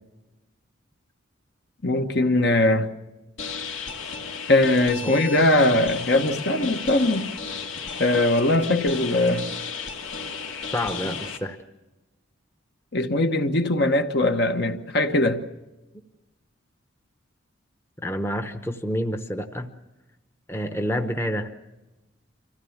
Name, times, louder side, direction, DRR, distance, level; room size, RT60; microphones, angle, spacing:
voice 1, 1.8-2.9 4.5-7.3 8.0-9.5 12.9-15.4, left 2 dB, 55° left, 7 dB, 1.2 m, -21 dB
sound 1, 3.4-11.4, left 5 dB, 80° left, 2.4 m, -34 dB
voice 2, 10.7-11.6 18.0-19.7 20.5-21.5, equal, 10° left, 7 dB, 0.9 m, -28 dB
25.5 x 16.5 x 7.2 m, 1.1 s
head